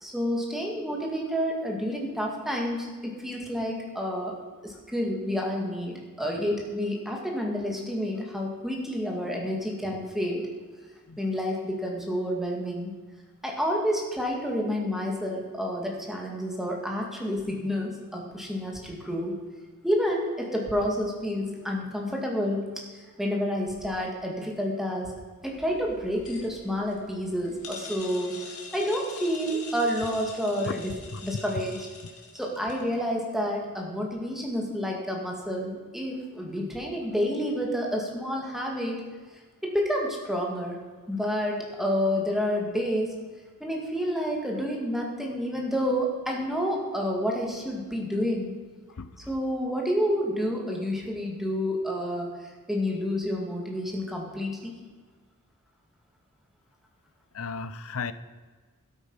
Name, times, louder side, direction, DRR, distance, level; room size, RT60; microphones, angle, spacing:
voice 1, 0.0-4.3 4.6-10.5 11.2-12.9 13.4-19.4 19.8-22.6 23.2-25.1 25.4-28.4 28.7-30.9 31.2-31.9 32.3-39.0 39.6-40.8 41.1-43.1 43.6-48.5 49.3-52.3 52.7-54.7, equal, ahead, -1 dB, 2.0 m, -29 dB
sound 1, 25.5-32.9, left 4 dB, 85° left, 2.3 m, -44 dB
voice 2, 57.3-58.1, left 5 dB, 65° left, 14 dB, 0.6 m, -34 dB
12.5 x 8.4 x 5.6 m, 1.4 s
head